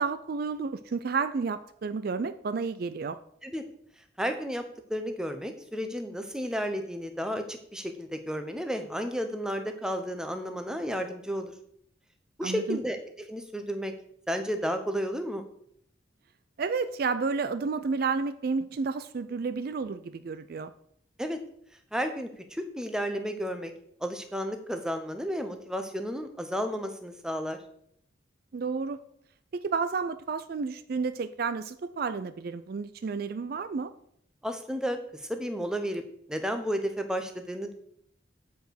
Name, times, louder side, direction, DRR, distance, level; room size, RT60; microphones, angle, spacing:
voice 1, 0.0-3.2 12.4-12.8 16.6-20.7 28.5-29.0 29.5-33.9, right 4 dB, 50° right, 12 dB, 0.4 m, -31 dB
voice 2, 4.2-4.6 4.9-11.5 12.4-13.0 13.3-13.9 14.3-15.4 21.2-21.4 21.9-23.7 24.0-27.6 34.4-36.0 36.3-37.7, equal, 5° right, 6 dB, 0.8 m, -32 dB
9.2 x 5.0 x 6.3 m, 0.70 s
head